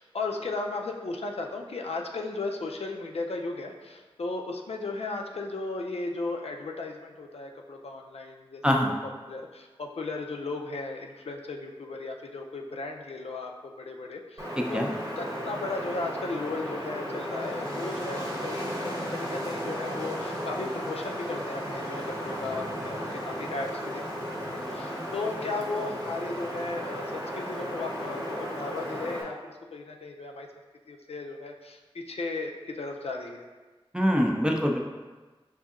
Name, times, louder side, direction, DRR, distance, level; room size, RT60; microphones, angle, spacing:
voice 1, 0.0-8.8 9.3-13.5 13.8-30.5 30.9-33.5, left 3 dB, 80° left, 1 dB, 0.4 m, -36 dB
Wind, 14.4-29.2, equal, 35° right, 0.9 m, -34 dB
voice 2, 14.6-14.9 33.9-34.8, equal, 10° right, 1 dB, 0.5 m, -24 dB
5.1 x 2.7 x 2.4 m, 1.3 s
wide cardioid pair, 40°, 10 cm